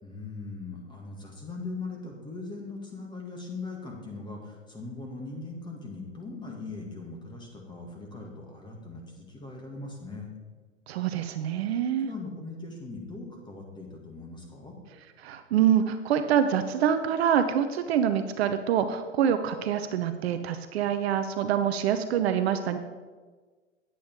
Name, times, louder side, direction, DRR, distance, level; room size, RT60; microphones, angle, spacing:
voice 1, 0.0-10.3 12.0-14.8, left 3 dB, 10° left, 1 dB, 1.8 m, -40 dB
voice 2, 10.9-12.1 15.2-22.8, right 9 dB, 55° right, 9 dB, 0.8 m, -26 dB
9.4 x 8.2 x 4.6 m, 1.4 s
hypercardioid pair, 125°, 39 cm